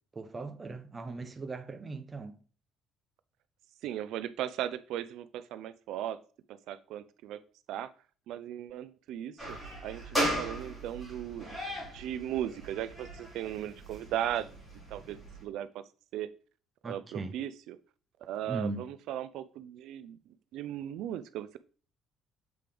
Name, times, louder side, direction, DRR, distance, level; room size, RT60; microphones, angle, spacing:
voice 1, 0.1-2.4 16.8-17.3 18.5-18.9, right 3 dB, 15° right, 0.6 m, -38 dB
voice 2, 3.8-6.2 6.5-7.4 7.7-7.9 8.3-9.6 9.8-11.6 11.9-14.5 14.9-15.8 16.1-16.3 16.8-17.8 18.2-20.2 20.5-21.6, right 11 dB, 60° right, 0.4 m, -37 dB
sound 1, 9.4-15.4, equal, 5° left, 2.8 m, -37 dB
7.6 x 5.0 x 3.4 m
cardioid pair, 180°, 0 cm